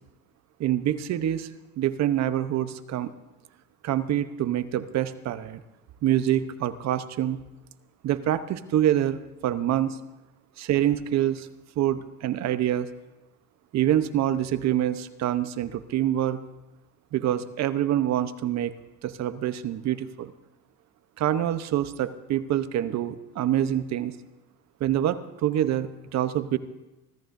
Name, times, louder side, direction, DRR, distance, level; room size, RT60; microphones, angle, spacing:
voice 1, 0.6-1.5 1.8-3.1 3.8-5.6 6.0-7.4 8.0-10.0 10.6-11.5 11.8-12.9 13.7-16.4 17.1-18.7 19.0-20.3 21.2-24.1 24.8-26.6, right 11 dB, 50° right, 12 dB, 0.9 m, -26 dB
25.0 x 14.0 x 2.7 m, 1.0 s
supercardioid pair, 110°, 35 cm